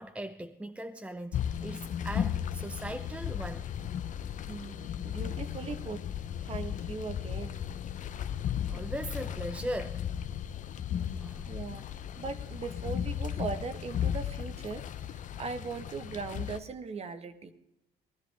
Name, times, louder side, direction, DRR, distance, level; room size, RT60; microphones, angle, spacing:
voice 1, 0.0-3.7 8.7-10.0 11.2-11.5, right 1 dB, 5° right, 0.8 m, -39 dB
sound 1, 1.3-16.6, left 9 dB, 50° left, 0.7 m, -35 dB
voice 2, 4.5-6.0 6.4-7.6 11.5-11.8 12.2-17.5, right 4 dB, 40° right, 1.4 m, -39 dB
20.0 x 13.0 x 3.5 m
cardioid pair, 110°, 17 cm